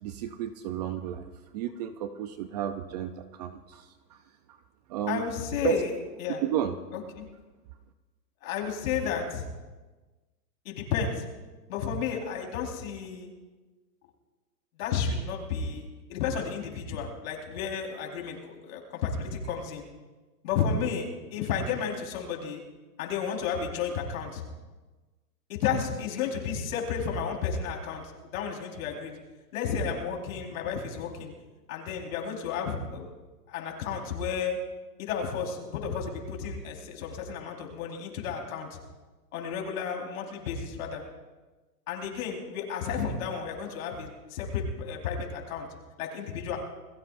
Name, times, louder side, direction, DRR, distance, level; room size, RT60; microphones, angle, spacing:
voice 1, 0.0-3.9 4.9-5.2 5.6-5.8 6.4-6.8, right 11 dB, 25° right, 9 dB, 0.5 m, -32 dB
voice 2, 5.1-6.4 6.9-7.2 8.4-9.5 10.6-11.2 11.7-13.3 14.8-19.8 20.4-22.6 23.0-24.4 25.5-28.0 28.3-29.2 29.5-31.3 31.7-33.1 33.5-34.6 35.0-38.8 39.3-41.0 41.9-45.7 46.0-46.6, left 6 dB, 55° left, 1 dB, 4.4 m, -32 dB
29.0 x 19.0 x 2.6 m, 1.2 s
hypercardioid pair, 140°, 49 cm